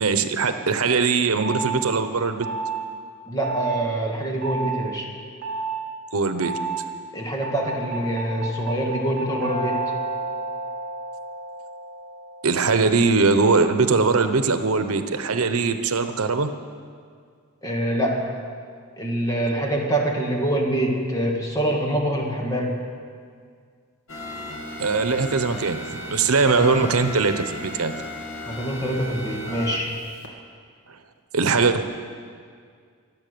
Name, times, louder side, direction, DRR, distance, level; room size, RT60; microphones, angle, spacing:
voice 1, 0.0-2.5 6.1-6.6 12.4-16.5 24.8-27.9 31.3-31.8, right 4 dB, 90° right, 9 dB, 0.9 m, -21 dB
sound 1, 1.4-1.8 2.4-2.8 3.4-3.8 4.4-4.7 5.4-5.8 6.4-6.8 7.4-12.5, right 3 dB, 40° right, 4.3 m, -30 dB
voice 2, 3.3-5.1 7.1-9.9 17.6-18.4 19.0-22.8 28.5-29.9, right 1 dB, 15° left, 0 dB, 1.9 m, -25 dB
sound 2, 24.1-30.3, left 1 dB, 75° left, 2.0 m, -35 dB
23.5 x 8.4 x 6.8 m, 2.1 s
head